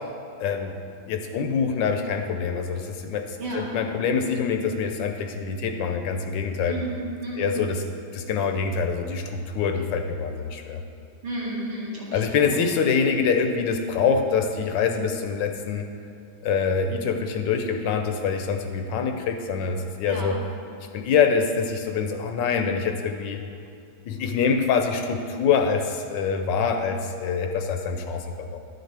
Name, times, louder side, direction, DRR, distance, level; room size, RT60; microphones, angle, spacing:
voice 1, 0.4-0.7 1.1-6.7 7.4-7.8 8.1-10.8 12.1-15.9 16.4-20.4 20.9-23.4 24.1-28.6, left 6 dB, 75° left, 5 dB, 1.2 m, -25 dB
voice 2, 6.7-7.5 11.2-12.6 20.1-20.4, right 2 dB, 85° right, -6 dB, 2.7 m, -32 dB
11.0 x 6.5 x 3.3 m, 2.6 s
omnidirectional pair, 2.2 m